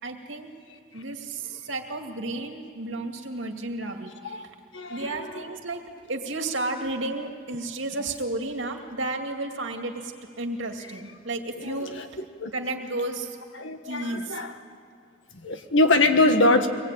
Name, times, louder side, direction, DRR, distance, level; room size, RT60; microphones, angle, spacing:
voice 1, 0.0-0.6 0.9-4.5 4.9-12.2 12.5-13.4 13.8-14.4, right 2 dB, 85° right, 4 dB, 2.3 m, -32 dB
voice 2, 4.7-5.3 11.5-12.5 13.6-14.5 15.3-16.7, left 2 dB, 85° left, 7 dB, 1.7 m, -23 dB
24.5 x 19.5 x 9.0 m, 2.2 s
head